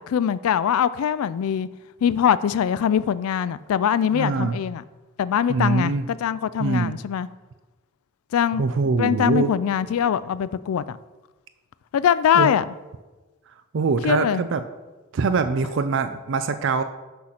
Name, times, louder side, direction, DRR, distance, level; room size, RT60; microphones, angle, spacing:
voice 1, 0.0-1.7 2.0-4.8 5.2-7.3 8.3-8.6 9.0-11.0 11.9-12.6 14.0-14.4, left 8 dB, 85° left, 0.3 m, -22 dB
voice 2, 4.1-4.6 5.5-6.1 6.6-7.0 8.6-9.5 12.3-12.5 13.7-14.6 15.1-16.8, right 4 dB, 60° right, 0.4 m, -23 dB
6.3 x 5.7 x 5.8 m
head